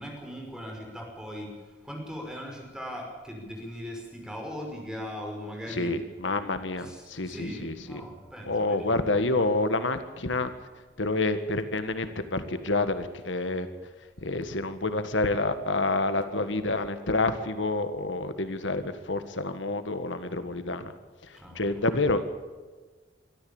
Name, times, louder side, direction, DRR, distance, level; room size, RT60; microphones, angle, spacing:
voice 1, 0.0-1.5 1.8-6.0 6.8-8.9 21.3-21.7, equal, 5° right, 0 dB, 5.5 m, -39 dB
voice 2, 5.7-8.0 8.4-10.5 11.0-13.7 14.2-20.9 21.2-22.2, left 2 dB, 85° left, 10 dB, 1.6 m, -28 dB
24.0 x 13.5 x 8.8 m, 1.4 s
head